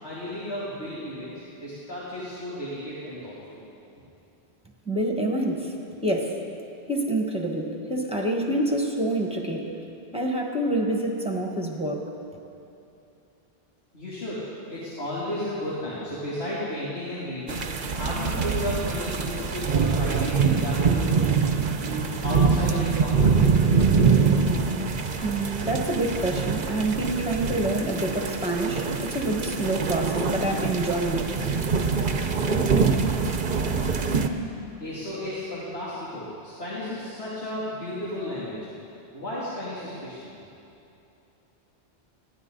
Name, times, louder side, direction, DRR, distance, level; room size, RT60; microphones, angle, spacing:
voice 1, 0.0-3.6 13.9-14.4 14.7-17.7 17.9-24.1 34.8-38.7 39.1-40.3, left 1 dB, 80° left, -10 dB, 3.3 m, -34 dB
voice 2, 4.8-5.7 6.0-6.4 6.9-9.7 10.1-12.1 25.2-31.4, right 1 dB, 5° right, 0 dB, 1.6 m, -27 dB
sound 1, 17.5-34.3, right 5 dB, 55° right, 0.9 m, -24 dB
21.0 x 16.0 x 4.0 m, 2.8 s
omnidirectional pair, 1.1 m